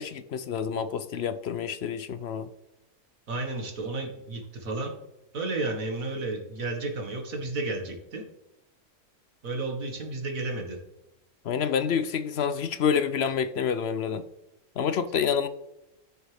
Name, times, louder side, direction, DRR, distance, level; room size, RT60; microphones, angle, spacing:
voice 1, 0.0-2.5 11.4-14.3 14.8-15.5, left 7 dB, 65° left, 12 dB, 0.7 m, -28 dB
voice 2, 3.3-5.0 5.3-8.2 9.4-10.8, right 2 dB, 70° right, 3 dB, 2.0 m, -32 dB
13.5 x 6.8 x 3.4 m, 0.90 s
omnidirectional pair, 1.5 m